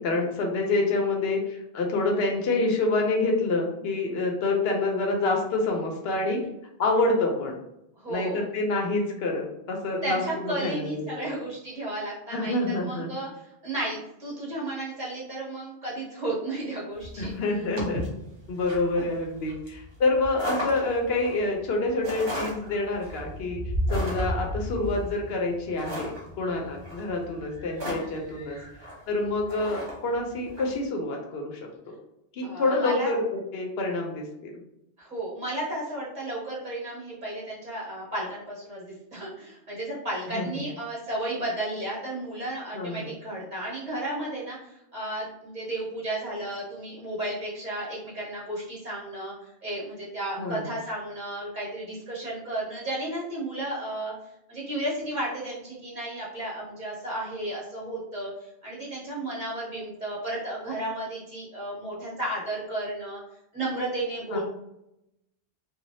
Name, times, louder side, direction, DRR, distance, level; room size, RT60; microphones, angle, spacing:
voice 1, 0.0-6.4 6.8-7.6 8.1-11.2 12.3-13.1 17.2-18.0 18.5-23.6 23.9-28.6 29.1-31.7 32.3-34.6 40.3-40.6 42.7-43.1 50.4-50.6 64.3-64.4, left 2 dB, 70° left, 1 dB, 0.8 m, -27 dB
voice 2, 8.0-8.5 10.0-17.3 32.4-33.1 35.0-54.1 54.5-63.2 63.5-64.4, right 1 dB, 45° right, -6 dB, 1.3 m, -33 dB
sound 1, 17.0-30.7, equal, 65° right, 1.3 m, -35 dB
3.1 x 2.3 x 2.6 m, 0.83 s
omnidirectional pair, 1.1 m